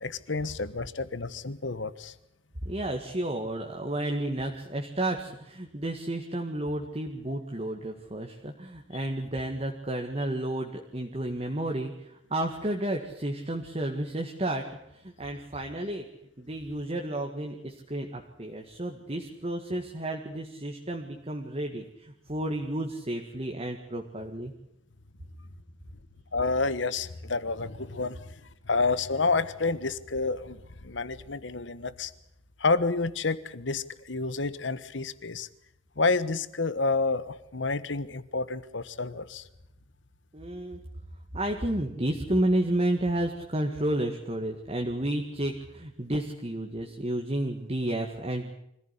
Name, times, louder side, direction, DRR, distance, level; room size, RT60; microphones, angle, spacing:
voice 1, 0.0-2.1 26.3-28.3 28.7-32.1 32.6-35.5 36.0-39.4, left 3 dB, 70° left, 15 dB, 1.2 m, -29 dB
voice 2, 2.6-14.6 14.9-16.1 16.4-24.5 40.3-40.8 41.3-48.5, right 1 dB, 30° right, 2 dB, 1.9 m, -31 dB
25.0 x 15.5 x 9.9 m, 0.81 s
head